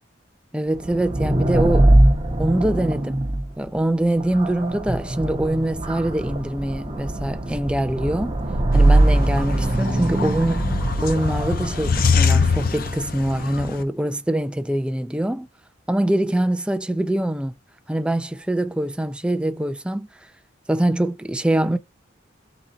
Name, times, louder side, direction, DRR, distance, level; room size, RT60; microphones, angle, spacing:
voice 1, 0.5-2.0 2.4-3.2 3.6-8.4 8.7-10.6 11.0-15.5 15.9-17.5 17.9-20.1 20.7-21.8, right 1 dB, 5° right, 0.4 m, -23 dB
sound 1, 0.7-13.3, right 1 dB, 25° right, 0.8 m, -21 dB
sound 2, 8.7-13.8, left 5 dB, 50° left, 0.7 m, -24 dB
4.0 x 3.0 x 3.9 m
head